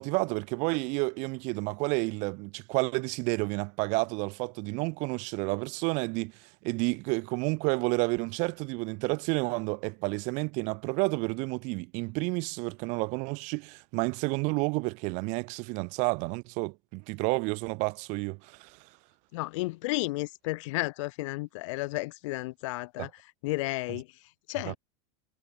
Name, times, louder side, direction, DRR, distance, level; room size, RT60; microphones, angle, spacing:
voice 1, 0.0-18.9 23.0-23.1 24.7-24.8, right 30 dB, 40° right, 1.9 m, -30 dB
voice 2, 19.3-24.8, left 22 dB, 55° left, 2.6 m, -33 dB
supercardioid pair, 180°, 19 cm